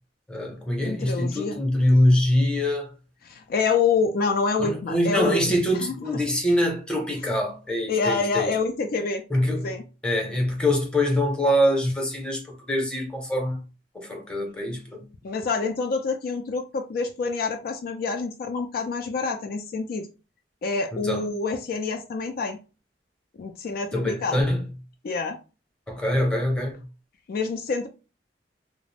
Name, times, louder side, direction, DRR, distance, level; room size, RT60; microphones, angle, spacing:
voice 1, 0.3-2.9 4.6-8.5 9.3-9.7 10.0-12.4 12.7-13.6 13.9-15.0 20.9-21.3 23.9-24.7 25.9-26.8, left 1 dB, 5° left, 0.7 m, -24 dB
voice 2, 0.8-1.6 3.2-5.9 7.9-9.2 9.6-9.8 15.2-20.1 20.6-22.6 23.4-24.4 25.0-25.4 27.3-27.9, left 4 dB, 55° left, 0.3 m, -27 dB
2.3 x 2.0 x 3.2 m
head